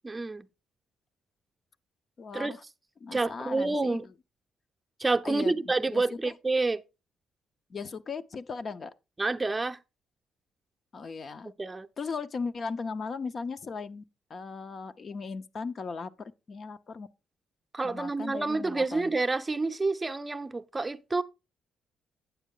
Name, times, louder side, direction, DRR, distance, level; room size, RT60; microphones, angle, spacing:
voice 1, 0.0-0.4 2.3-2.5 3.1-4.0 5.0-6.8 9.2-9.8 11.6-11.9 17.7-21.2, right 3 dB, 20° right, 0.6 m, -28 dB
voice 2, 2.2-2.6 3.0-4.0 5.2-6.3 7.7-8.9 10.9-11.5 12.0-14.0 14.3-17.1 17.8-19.1, left 4 dB, 45° left, 0.6 m, -37 dB
9.1 x 7.3 x 3.7 m
cardioid pair, 90°, 0 cm